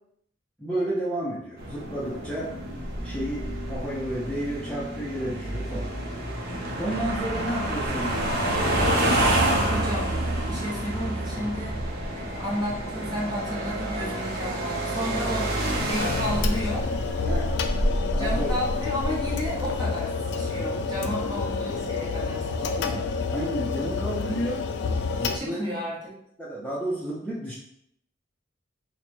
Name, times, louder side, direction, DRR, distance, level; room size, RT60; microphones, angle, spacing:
voice 1, 0.6-2.5 3.0-5.9 6.8-8.3 17.2-17.5 18.1-18.5 20.9-21.2 22.6-24.6 25.2-25.7 26.4-27.5, right 1 dB, 5° left, -9 dB, 0.6 m, -32 dB
sound 1, 1.6-19.7, right 1 dB, 50° right, 0.7 m, -28 dB
voice 2, 9.7-10.2 10.5-11.7 12.1-16.9 18.2-22.9 25.3-26.1, equal, 20° right, -5 dB, 1.0 m, -32 dB
sound 2, 16.0-25.4, left 4 dB, 60° left, 0.3 m, -29 dB
3.1 x 2.2 x 4.2 m, 0.74 s
head